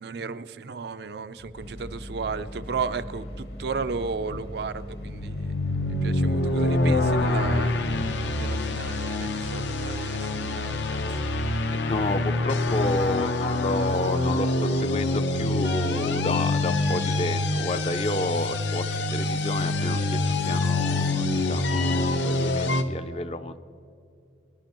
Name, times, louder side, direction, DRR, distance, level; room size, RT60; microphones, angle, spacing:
voice 1, 0.0-5.5 6.0-7.7 8.4-11.0, right 5 dB, 65° right, 12 dB, 0.4 m, -34 dB
sound 1, 1.5-8.1, equal, 70° left, 1.5 m, -39 dB
sound 2, 5.0-22.8, left 2 dB, 85° left, 0.8 m, -26 dB
voice 2, 11.7-23.6, left 2 dB, 35° left, 11 dB, 0.4 m, -30 dB
21.5 x 11.0 x 3.0 m, 2.6 s
head